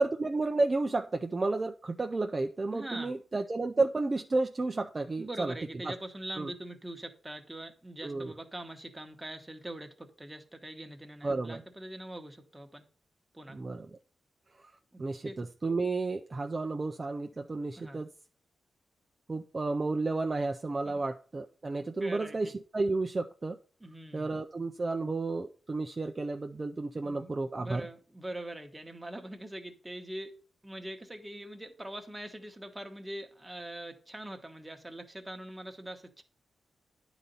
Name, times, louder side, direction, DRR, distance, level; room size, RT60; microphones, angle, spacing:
voice 1, 0.0-5.5 5.8-5.9 6.4-6.5 8.0-8.3 11.2-11.6 13.5-13.9 15.0-18.1 19.3-23.6 24.1-27.9, right 3 dB, 30° right, 0.5 m, -32 dB
voice 2, 2.7-3.1 5.2-12.8 13.3-13.6 15.2-15.3 17.8-18.0 20.8-20.9 22.0-22.5 23.8-24.3 27.0-27.3 27.6-30.4 30.6-36.2, right 1 dB, 10° right, 1.2 m, -43 dB
9.9 x 4.0 x 5.4 m
cardioid pair, 100°, 0 cm